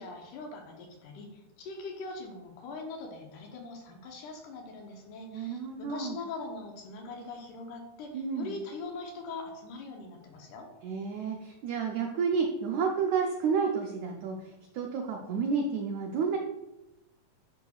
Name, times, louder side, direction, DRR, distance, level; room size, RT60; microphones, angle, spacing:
voice 1, 0.0-10.7, left 3 dB, 70° left, 1 dB, 2.2 m, -42 dB
voice 2, 5.3-6.2 8.1-8.5 10.8-16.4, right 5 dB, 90° right, 1 dB, 1.6 m, -30 dB
10.5 x 5.6 x 2.4 m, 0.95 s
omnidirectional pair, 4.1 m